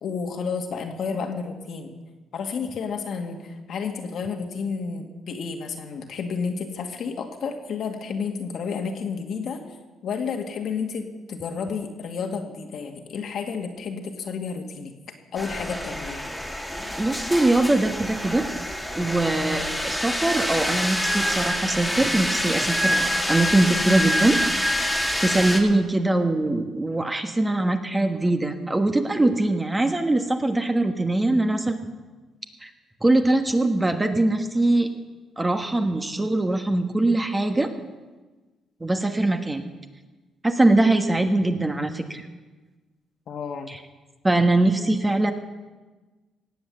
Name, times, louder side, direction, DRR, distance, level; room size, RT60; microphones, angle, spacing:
voice 1, 0.0-1.9 2.3-9.6 10.0-14.9 15.3-16.3 43.3-43.7, left 5 dB, 65° left, 4 dB, 2.0 m, -31 dB
sound 1, 15.4-25.6, equal, 5° left, 2.3 m, -26 dB
voice 2, 17.0-18.5 19.0-23.0 23.3-24.4 25.2-31.8 32.6-32.7 33.0-34.9 35.4-37.7 38.8-39.6 40.4-42.3 43.7-43.8 44.2-45.3, right 2 dB, 15° right, 6 dB, 1.4 m, -22 dB
18.0 x 7.9 x 7.8 m, 1.3 s
cardioid pair, 90°, 0 cm